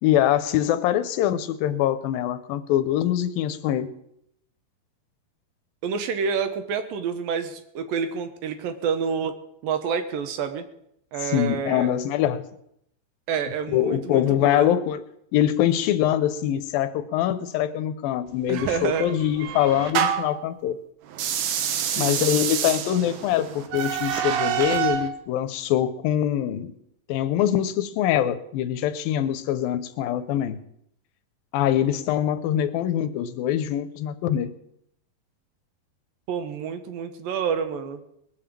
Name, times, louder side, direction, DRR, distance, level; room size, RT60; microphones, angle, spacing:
voice 1, 0.0-3.9 11.2-12.4 13.7-15.0 15.3-20.8 22.0-26.7 27.1-30.6 31.5-34.5, left 11 dB, 80° left, 11 dB, 2.3 m, -24 dB
voice 2, 5.8-9.4 9.6-10.7 11.1-11.9 13.3-14.7 18.5-19.1 21.8-22.2 36.3-38.0, right 6 dB, 75° right, 8 dB, 2.6 m, -28 dB
sound 1, 18.6-20.4 21.1-25.1, right 9 dB, 90° right, 3.2 m, -27 dB
20.5 x 6.9 x 7.4 m, 0.74 s
omnidirectional pair, 4.5 m